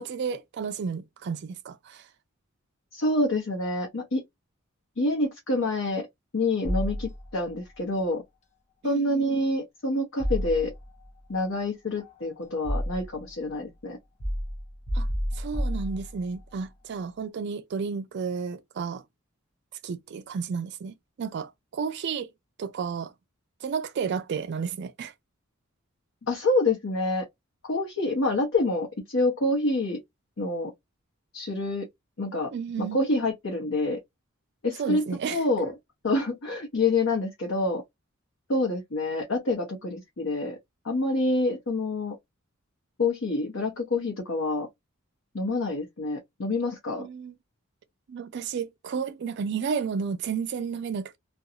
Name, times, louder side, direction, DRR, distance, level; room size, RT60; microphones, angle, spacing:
voice 1, 0.0-2.1 8.9-9.4 14.9-15.1 15.3-19.0 19.8-22.3 22.6-23.1 23.6-25.1 32.5-33.0 34.8-35.4 47.0-47.3 48.1-51.2, right 6 dB, 55° right, 0.4 m, -32 dB
voice 2, 2.9-4.2 5.0-6.1 6.3-8.2 8.8-10.7 11.3-14.0 26.2-27.3 27.6-30.0 30.4-30.7 31.3-31.9 32.2-32.5 32.8-34.0 34.6-35.7 36.0-37.8 38.5-40.6 40.8-42.2 43.0-44.7 45.3-47.1, left 2 dB, 70° left, 0.9 m, -27 dB
sound 1, 6.6-7.5 10.2-11.1 12.0-13.3 14.2-16.4, equal, 35° left, 0.8 m, -31 dB
2.5 x 2.3 x 2.7 m
head